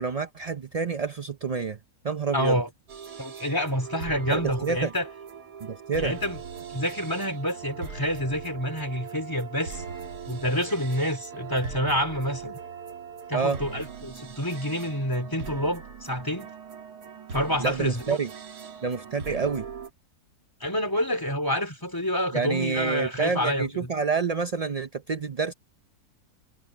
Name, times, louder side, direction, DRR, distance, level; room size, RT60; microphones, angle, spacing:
voice 1, 0.0-1.8 2.0-2.6 4.3-4.9 5.6-6.2 13.3-13.6 17.6-18.3 18.8-19.6 22.3-25.5, right 5 dB, 55° right, 0.4 m, -28 dB
voice 2, 2.3-2.7 3.2-5.1 6.0-6.4 6.7-9.8 10.3-12.6 13.3-16.5 17.3-18.2 20.6-23.9, equal, 15° left, 3.5 m, -28 dB
sound 1, 2.9-19.9, right 6 dB, 85° right, 2.4 m, -40 dB
omnidirectional pair, 1.6 m